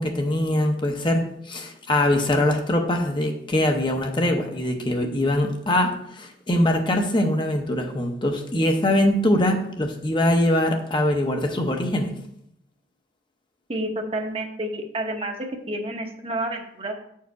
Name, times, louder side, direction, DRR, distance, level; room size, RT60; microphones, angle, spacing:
voice 1, 0.0-12.1, left 1 dB, 25° left, 3 dB, 0.7 m, -22 dB
voice 2, 13.7-16.9, right 1 dB, 35° right, 3 dB, 0.9 m, -29 dB
7.4 x 4.7 x 4.7 m, 0.72 s
head